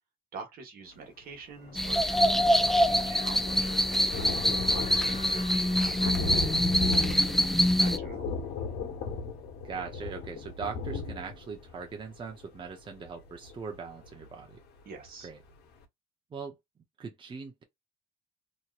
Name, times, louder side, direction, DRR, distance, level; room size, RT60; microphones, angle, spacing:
voice 1, 0.3-8.4 14.8-15.3, right 5 dB, 60° right, 1.3 m, -46 dB
sound 1, 0.8-0.9 1.6-6.7, left 6 dB, 40° left, 0.8 m, -46 dB
Thunder, 1.6-1.7 2.0-14.6 15.1-15.2 15.5-15.6, left 4 dB, 75° left, 1.2 m, -37 dB
sound 2, 1.7-8.0, equal, ahead, 0.3 m, -25 dB
voice 2, 9.6-14.6 15.2-15.4 16.3-16.6 17.0-17.6, right 5 dB, 30° right, 0.7 m, -40 dB
2.9 x 2.8 x 2.4 m
cardioid pair, 110°, 17 cm